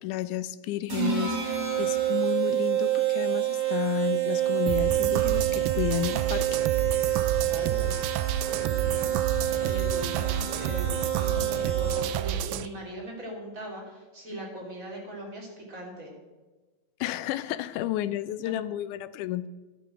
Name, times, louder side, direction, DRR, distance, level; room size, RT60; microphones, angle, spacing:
voice 1, 0.0-6.6 6.9-7.2 17.0-19.5, left 13 dB, 80° left, 14 dB, 1.9 m, -32 dB
sound 1, 0.9-12.3, right 11 dB, 50° right, 4.0 m, -28 dB
sound 2, 4.7-12.7, right 10 dB, 90° right, 2.3 m, -30 dB
voice 2, 7.4-7.9 8.4-9.2 9.6-16.1 18.4-18.5, right 1 dB, 25° right, -2 dB, 3.3 m, -40 dB
12.0 x 7.0 x 7.9 m, 1.3 s
omnidirectional pair, 3.9 m